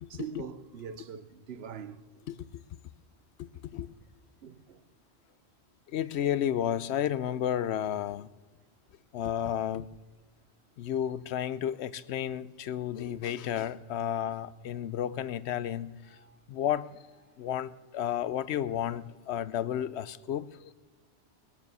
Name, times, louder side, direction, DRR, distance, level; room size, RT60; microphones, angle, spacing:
voice 1, 0.1-2.2 4.4-4.8 16.1-16.4 17.3-17.4, right 7 dB, 65° right, 1.0 m, -43 dB
voice 2, 2.3-2.6 3.4-3.9 5.9-8.3 9.1-9.9 10.8-16.2 16.5-16.9 17.4-20.7, left 10 dB, 75° left, 0.8 m, -32 dB
20.5 x 7.0 x 6.7 m
omnidirectional pair, 1.2 m